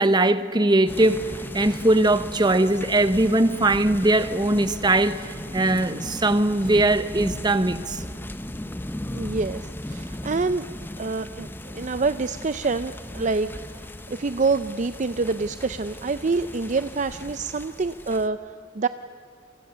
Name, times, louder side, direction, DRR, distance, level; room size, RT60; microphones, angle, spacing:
voice 1, 0.0-8.0, right 2 dB, 20° right, 0.9 m, -21 dB
sound 1, 0.9-18.3, left 1 dB, 10° left, 0.7 m, -37 dB
voice 2, 9.1-10.6 11.0-18.9, right 4 dB, 35° right, 0.5 m, -27 dB
29.0 x 24.0 x 6.9 m
head